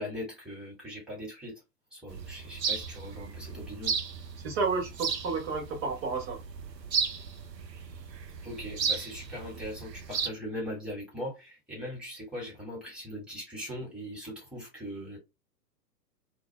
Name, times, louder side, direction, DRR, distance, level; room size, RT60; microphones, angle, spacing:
voice 1, 0.0-1.6 1.9-4.0 8.4-15.2, equal, ahead, 1.8 m, -40 dB
sound 1, 2.1-10.3, right 6 dB, 85° right, 0.6 m, -35 dB
voice 2, 4.4-6.4, right 4 dB, 40° right, 1.4 m, -31 dB
4.5 x 2.6 x 2.3 m
figure-of-eight pair, 110°, 49 cm